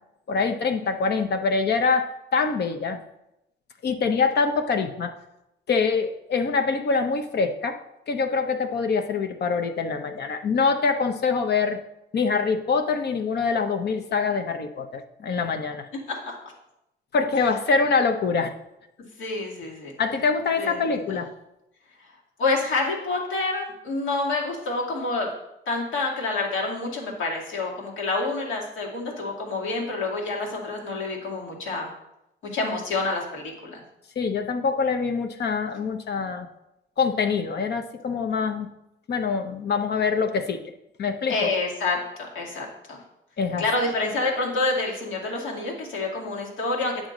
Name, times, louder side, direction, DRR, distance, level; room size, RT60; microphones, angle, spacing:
voice 1, 0.3-3.0 3.8-5.1 5.7-7.8 8.1-11.8 12.1-15.9 17.1-18.5 20.0-21.3 34.2-36.5 37.0-38.7 39.1-40.6 41.0-41.5 43.4-43.6, left 5 dB, 55° left, 6 dB, 0.9 m, -24 dB
voice 2, 19.2-19.9 20.6-21.2 22.0-22.1 22.4-25.3 25.7-31.9 32.4-33.8 41.3-42.0 42.3-43.0 43.6-47.1, left 3 dB, 80° left, -2 dB, 2.2 m, -28 dB
9.0 x 6.3 x 3.9 m, 0.87 s
cardioid pair, 90°, 20 cm